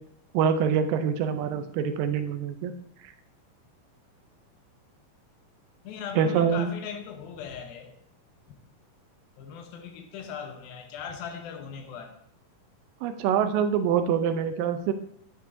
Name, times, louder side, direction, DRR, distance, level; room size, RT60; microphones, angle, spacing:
voice 1, 0.3-2.7 6.2-6.7 13.0-14.9, right 7 dB, 80° right, 9 dB, 2.2 m, -25 dB
voice 2, 5.8-7.9 9.4-12.2, left 7 dB, 85° left, 6 dB, 2.7 m, -39 dB
9.6 x 9.1 x 2.6 m, 0.67 s
omnidirectional pair, 4.0 m